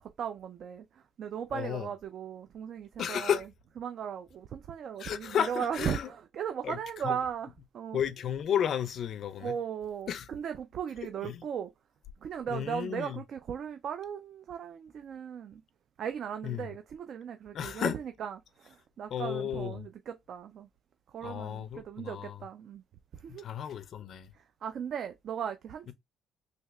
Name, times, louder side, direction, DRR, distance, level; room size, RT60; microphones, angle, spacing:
voice 1, 0.0-3.4 3.8-8.0 9.4-11.7 12.2-15.6 16.0-20.7 21.1-22.8 23.1-23.5 24.3-25.9, right 8 dB, 50° right, 0.3 m, -37 dB
voice 2, 1.5-1.9 3.0-3.5 5.0-6.1 6.6-6.8 7.0-7.2 7.9-9.6 10.1-10.3 11.2-11.4 12.5-13.2 16.4-16.7 17.5-18.0 19.1-19.9 21.2-22.4 23.3-24.3, left 9 dB, 50° left, 0.5 m, -33 dB
3.4 x 2.7 x 2.9 m
cardioid pair, 130°, 0 cm